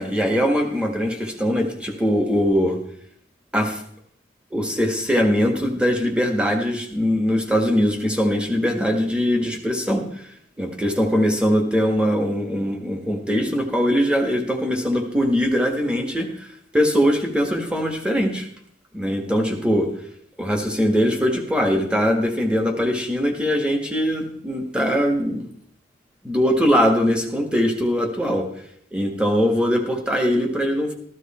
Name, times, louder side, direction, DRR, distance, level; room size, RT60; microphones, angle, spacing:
voice 1, 0.0-2.8 3.5-3.8 4.5-10.2 10.6-16.5 16.7-18.5 18.9-19.9 20.4-25.4 26.2-28.4 28.9-30.9, equal, 5° right, 3 dB, 1.7 m, -21 dB
14.0 x 13.0 x 4.4 m, 0.67 s
head